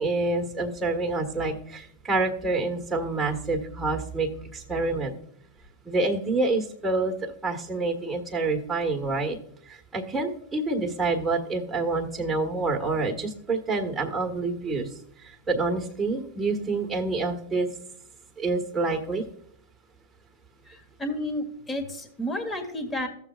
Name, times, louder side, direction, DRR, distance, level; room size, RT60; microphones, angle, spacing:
voice 1, 0.0-5.1 5.8-7.1 7.4-9.4 9.9-14.9 15.5-17.7 18.4-19.2, right 3 dB, 15° right, 1 dB, 1.7 m, -27 dB
voice 2, 20.7-23.1, left 1 dB, 15° left, 6 dB, 1.6 m, -31 dB
14.0 x 7.3 x 2.4 m, 0.65 s
hypercardioid pair, 105°, 0 cm